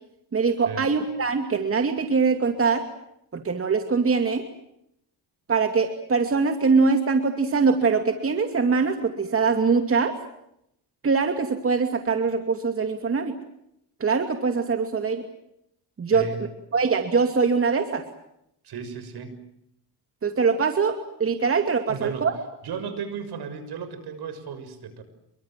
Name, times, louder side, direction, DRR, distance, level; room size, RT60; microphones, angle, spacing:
voice 1, 0.3-2.8 3.3-4.4 5.5-10.1 11.0-13.3 14.0-15.3 16.0-16.3 16.7-18.0 20.2-22.3, right 5 dB, 30° right, 6 dB, 2.6 m, -23 dB
voice 2, 18.6-19.3 21.9-22.3 22.6-25.0, right 6 dB, 65° right, 11 dB, 6.6 m, -34 dB
28.5 x 23.5 x 7.6 m, 0.78 s
cardioid pair, 100°, 41 cm